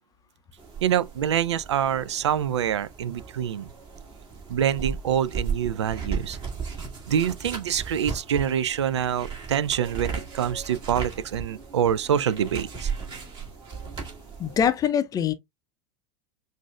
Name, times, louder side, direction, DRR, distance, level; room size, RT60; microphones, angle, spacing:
sound 1, 0.6-14.7, right 6 dB, 30° right, 2.3 m, -36 dB
voice 1, 0.8-3.7 4.5-6.4 7.1-12.9, right 9 dB, 70° right, 0.5 m, -26 dB
voice 2, 14.4-15.3, left 8 dB, 25° left, 0.5 m, -23 dB
6.0 x 2.6 x 2.3 m
figure-of-eight pair, 85°, 15 cm